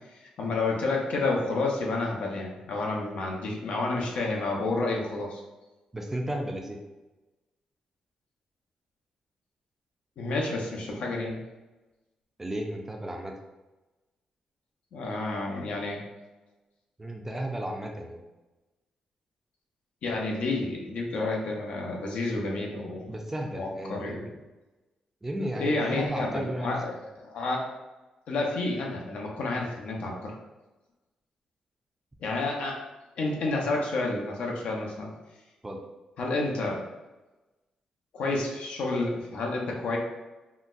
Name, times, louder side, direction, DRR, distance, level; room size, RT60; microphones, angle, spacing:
voice 1, 0.1-5.4 10.2-11.4 14.9-16.0 20.0-23.1 23.5-24.3 25.6-27.6 28.3-30.4 32.2-32.8 33.2-35.1 36.2-36.8 38.1-40.0, left 2 dB, 75° left, 0 dB, 0.6 m, -30 dB
voice 2, 5.9-6.8 12.4-13.3 17.0-18.2 23.1-24.2 25.2-26.8 35.6-35.8, right 1 dB, 15° right, 2 dB, 0.4 m, -34 dB
3.9 x 2.0 x 2.5 m, 1.1 s
cardioid pair, 100°, 2 cm